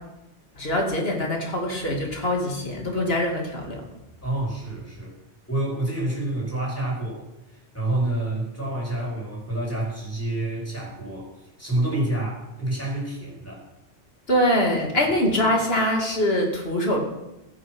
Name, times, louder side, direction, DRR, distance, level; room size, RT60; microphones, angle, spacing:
voice 1, 0.6-3.8 14.3-17.0, left 1 dB, 55° left, 1 dB, 2.6 m, -23 dB
voice 2, 4.2-5.1 5.5-13.6, right 1 dB, 10° left, -4 dB, 4.4 m, -28 dB
15.0 x 7.2 x 6.1 m, 0.93 s
omnidirectional pair, 1.2 m